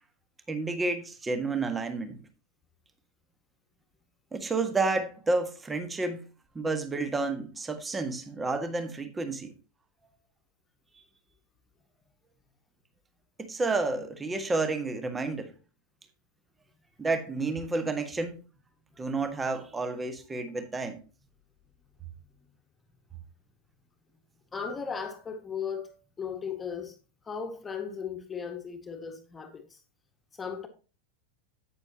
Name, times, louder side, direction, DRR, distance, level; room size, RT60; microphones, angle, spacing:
voice 1, 0.5-2.2 4.3-6.3 6.5-9.5 13.4-15.5 17.0-18.4 19.0-21.0, right 3 dB, 15° right, 1.6 m, -30 dB
voice 2, 24.5-27.0 27.2-29.8 30.3-30.7, left 6 dB, 15° left, 1.8 m, -36 dB
10.5 x 9.2 x 2.9 m
figure-of-eight pair, 90°, 0 cm